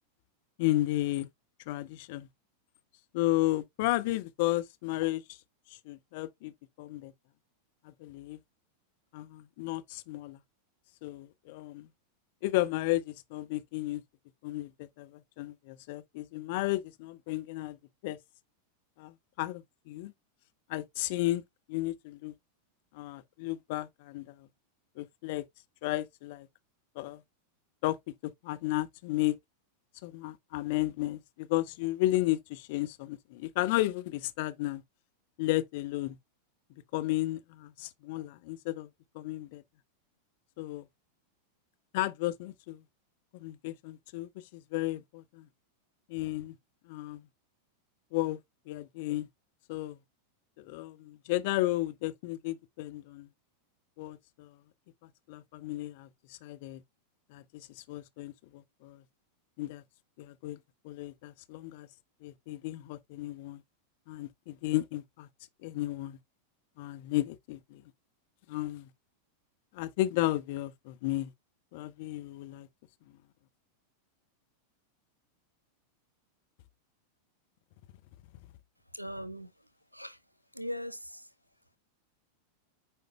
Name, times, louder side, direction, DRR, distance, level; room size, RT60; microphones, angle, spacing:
voice 1, 0.6-1.3 1.7-2.3 3.1-5.2 5.9-6.5 6.8-7.1 8.0-8.4 9.1-10.4 11.0-11.9 12.4-14.0 14.4-17.8 18.0-18.2 19.0-19.1 19.4-20.1 20.7-21.4 21.7-22.3 22.9-24.3 25.0-25.4 25.8-26.5 27.0-27.2 27.8-29.4 30.0-34.8 35.4-36.2 36.9-38.9 39.1-39.6 40.6-40.8 41.9-42.8 43.4-45.5 46.1-46.5 46.9-47.2 48.1-48.4 48.7-49.3 49.7-50.0 50.6-53.3 54.0-54.5 55.3-56.8 57.3-59.0 59.6-59.8 60.2-60.6 60.8-61.9 62.2-63.6 64.1-65.3 65.6-66.2 66.8-67.8 68.5-68.9 69.7-71.3 71.7-72.7, left 17 dB, 50° left, 0.8 m, -33 dB
voice 2, 78.9-79.5 79.9-80.2 80.5-81.3, equal, 90° right, 0.7 m, -39 dB
8.9 x 4.7 x 2.2 m
figure-of-eight pair, 90°, 0 cm